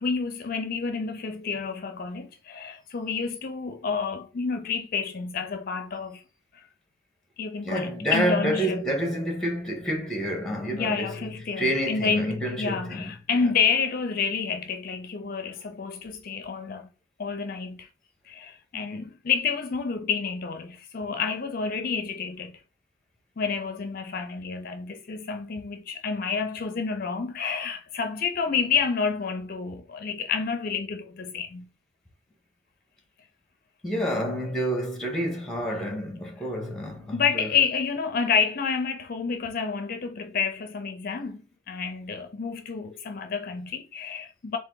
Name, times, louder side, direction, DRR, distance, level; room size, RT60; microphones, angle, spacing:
voice 1, 0.0-6.2 6.5-6.6 7.4-8.8 10.7-16.9 17.2-17.9 18.3-22.5 23.4-31.7 37.1-41.4 41.7-44.6, left 5 dB, 50° left, 0.5 m, -29 dB
voice 2, 7.6-11.3 11.6-13.1 33.8-37.5, equal, 5° left, 1.0 m, -28 dB
3.7 x 2.6 x 3.8 m
head